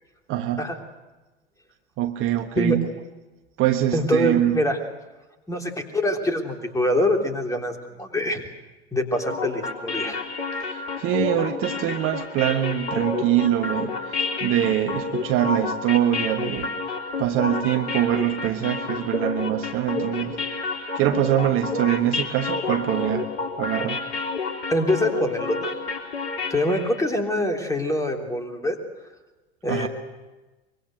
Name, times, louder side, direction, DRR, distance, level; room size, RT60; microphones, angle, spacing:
voice 1, 0.3-0.6 2.0-2.9 3.6-4.6 10.6-16.7 17.2-20.4 20.9-23.3 23.6-24.0 29.7-29.9, right 12 dB, 35° right, 7 dB, 1.3 m, -24 dB
voice 2, 3.9-4.8 5.5-8.4 8.9-10.3 24.7-25.7 26.5-28.8 29.6-29.9, left 1 dB, 10° left, 4 dB, 3.5 m, -24 dB
sound 1, 9.1-27.0, left 4 dB, 60° left, 3.6 m, -30 dB
25.0 x 23.0 x 8.0 m, 1.1 s
figure-of-eight pair, 85°, 34 cm